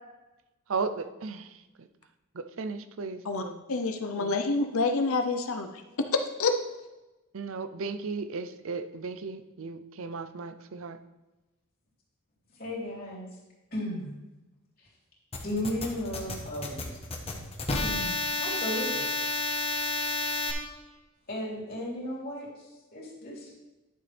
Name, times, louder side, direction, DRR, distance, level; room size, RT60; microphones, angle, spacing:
voice 1, 0.7-1.9 2.3-3.6 4.1-4.3 7.3-11.0, right 4 dB, 65° right, 10 dB, 0.6 m, -36 dB
voice 2, 3.7-5.7 6.0-6.5, left 3 dB, 70° left, 6 dB, 0.7 m, -27 dB
voice 3, 12.5-13.3 13.7-14.1 14.8-14.9 15.4-17.0 17.3-17.4 17.8-19.1 20.8-20.9 21.3-23.6, left 1 dB, 45° left, -5 dB, 3.3 m, -35 dB
sound 1, 15.3-20.5, left 2 dB, 25° left, 1.1 m, -31 dB
11.0 x 7.0 x 3.4 m, 1.1 s
head